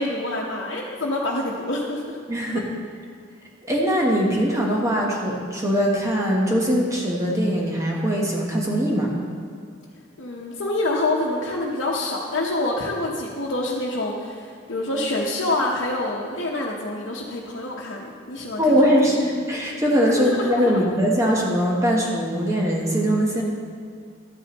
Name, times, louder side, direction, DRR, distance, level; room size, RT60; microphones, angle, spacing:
voice 1, 0.0-2.2 2.5-2.6 10.2-19.1 20.2-20.9, left 2 dB, 75° left, -5 dB, 1.0 m, -27 dB
voice 2, 2.3-2.6 3.6-9.1 18.6-23.4, equal, 15° right, -2 dB, 1.0 m, -21 dB
12.0 x 8.8 x 3.0 m, 2.2 s
head